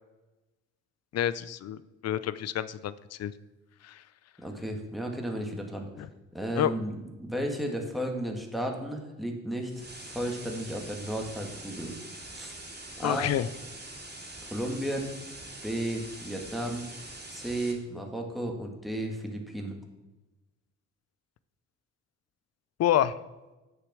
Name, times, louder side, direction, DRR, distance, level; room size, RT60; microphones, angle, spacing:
voice 1, 1.1-1.8 2.0-3.3 3.8-4.0 6.0-6.1 6.6-6.7 13.0-13.5 22.8-23.1, left 11 dB, 55° left, 16 dB, 0.6 m, -28 dB
voice 2, 4.4-5.9 6.3-11.9 12.3-12.6 13.0-13.3 14.4-15.1 15.6-16.9 17.3-19.8, right 1 dB, ahead, 1 dB, 1.9 m, -33 dB
sound 1, 9.6-17.7, right 2 dB, 35° right, 2.7 m, -44 dB
8.3 x 6.7 x 6.1 m, 1.1 s
cardioid pair, 90°, 30 cm